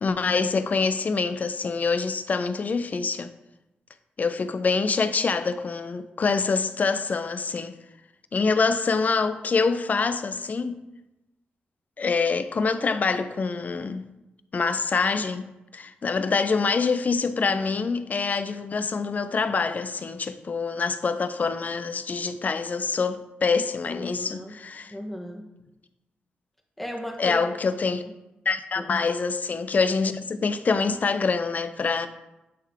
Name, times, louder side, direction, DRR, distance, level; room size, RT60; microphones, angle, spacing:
voice 1, 0.0-3.3 4.2-7.7 8.3-10.8 12.0-14.1 14.5-24.9 27.2-28.0 28.5-32.1, left 4 dB, 50° left, 0.5 m, -25 dB
voice 2, 23.9-24.6 24.9-25.5 26.8-27.5 28.8-28.9, equal, 5° left, 1.4 m, -35 dB
10.5 x 3.6 x 3.6 m
cardioid pair, 65°, 4 cm